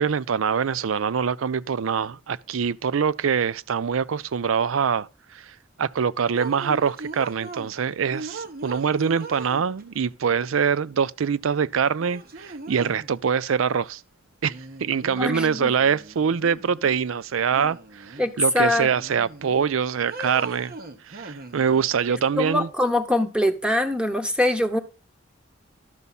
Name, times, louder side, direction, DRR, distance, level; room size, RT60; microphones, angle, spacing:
voice 1, 0.0-14.0 14.4-20.7 21.1-22.7, right 6 dB, 85° right, 0.5 m, -24 dB
sound 1, 6.3-7.7 8.1-10.0 11.4-11.5 12.0-13.1 14.5-15.4 15.8-17.0 17.5-18.4 18.7-19.7 20.1-21.9, right 3 dB, 50° right, 1.0 m, -39 dB
voice 2, 15.2-15.7 18.2-18.9 22.1-24.8, left 1 dB, 5° right, 1.0 m, -23 dB
12.0 x 6.9 x 4.1 m
head